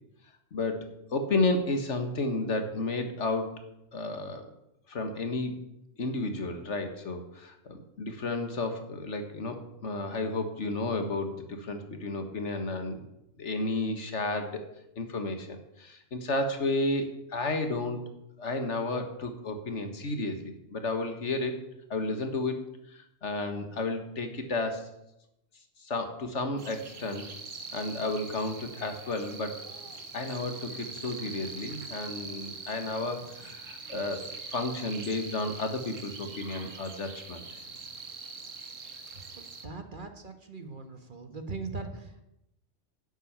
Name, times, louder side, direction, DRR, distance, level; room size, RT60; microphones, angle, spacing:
voice 1, 0.5-3.6 3.9-4.5 4.9-5.5 6.0-13.0 13.4-14.6 15.0-18.0 18.4-21.5 21.9-22.6 22.9-24.9 25.8-27.2 27.7-29.6 30.1-37.6, left 2 dB, 70° left, 6 dB, 1.8 m, -32 dB
sound 1, 26.6-39.6, right 4 dB, 90° right, 1.8 m, -43 dB
voice 2, 39.1-42.3, right 3 dB, 40° right, 6 dB, 1.6 m, -41 dB
11.5 x 8.1 x 8.7 m, 0.85 s
omnidirectional pair, 1.3 m